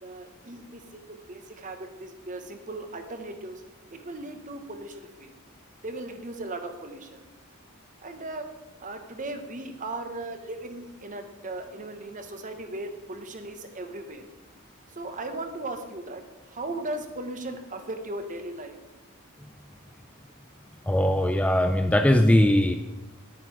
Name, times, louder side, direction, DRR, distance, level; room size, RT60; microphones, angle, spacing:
voice 1, 0.0-3.6 3.9-5.3 5.8-7.2 8.0-8.5 8.8-14.2 15.0-16.2 16.5-18.8, right 2 dB, 35° right, 7 dB, 1.2 m, -37 dB
voice 2, 20.9-22.8, left 1 dB, 5° left, 7 dB, 0.4 m, -20 dB
9.9 x 9.8 x 4.8 m, 1.1 s
head